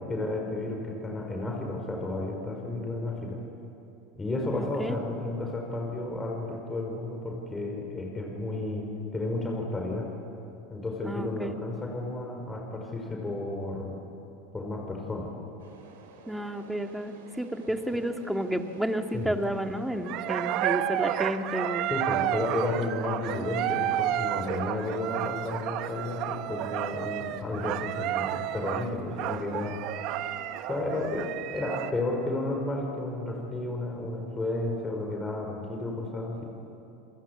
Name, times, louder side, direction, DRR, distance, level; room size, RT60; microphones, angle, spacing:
voice 1, 0.1-3.4 4.2-10.1 10.7-14.0 14.5-15.3 19.1-19.3 21.9-29.8 30.7-36.4, left 2 dB, 15° left, 0 dB, 5.2 m, -32 dB
voice 2, 4.5-5.0 11.0-11.5 16.3-21.9, right 1 dB, 5° right, 5 dB, 2.0 m, -31 dB
sound 1, 15.6-21.4, right 4 dB, 85° right, 4.7 m, -50 dB
sound 2, 20.0-31.9, right 12 dB, 60° right, 1.3 m, -31 dB
29.0 x 22.0 x 8.4 m, 2.8 s
hypercardioid pair, 100°, 0 cm